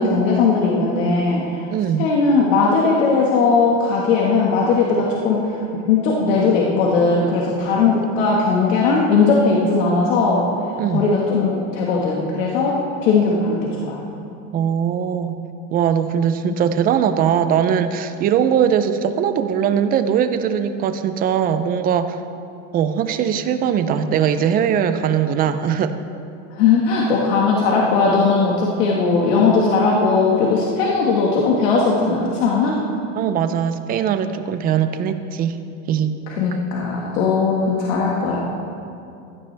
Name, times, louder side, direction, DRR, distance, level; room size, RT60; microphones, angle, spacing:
voice 1, 0.0-1.7 2.0-14.0 16.4-16.6 26.5-32.8 36.4-38.4, left 4 dB, 80° left, -3 dB, 1.7 m, -18 dB
voice 2, 1.7-2.1 10.8-11.0 14.5-15.4 15.7-22.2 22.7-26.0 33.2-35.6 35.9-36.2, right 8 dB, 25° right, 10 dB, 0.4 m, -20 dB
16.0 x 12.0 x 3.4 m, 2.6 s
cardioid pair, 160°, 37 cm